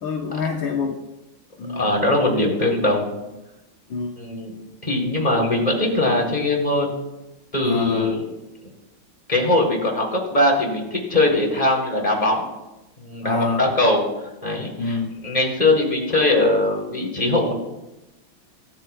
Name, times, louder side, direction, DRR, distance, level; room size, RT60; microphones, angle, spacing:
voice 1, 0.0-1.0 1.6-1.9 3.9-4.2 7.6-8.1 13.2-13.7 14.8-15.2, left 4 dB, 65° left, 0 dB, 1.9 m, -26 dB
voice 2, 1.7-3.1 4.2-4.5 4.8-7.0 7.5-8.2 9.3-12.5 13.0-14.0 14.4-15.0 15.2-17.5, left 2 dB, 20° left, 0 dB, 3.8 m, -21 dB
25.5 x 14.5 x 2.4 m, 0.98 s
omnidirectional pair, 2.3 m